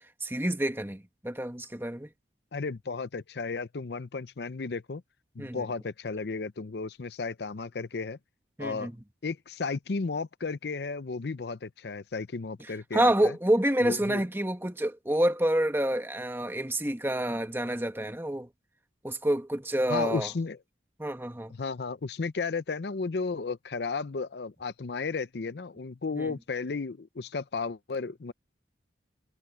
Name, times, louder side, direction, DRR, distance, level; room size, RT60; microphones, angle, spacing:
voice 1, 0.2-2.1 5.4-5.6 8.6-8.9 12.9-18.5 19.0-20.3 21.0-21.5 26.2-26.3, right 1 dB, 10° right, 1.2 m, -28 dB
voice 2, 2.5-5.0 5.4-8.2 8.6-8.9 9.2-13.4 13.8-14.2 19.9-20.6 21.5-28.3, left 4 dB, 65° left, 0.6 m, -34 dB
head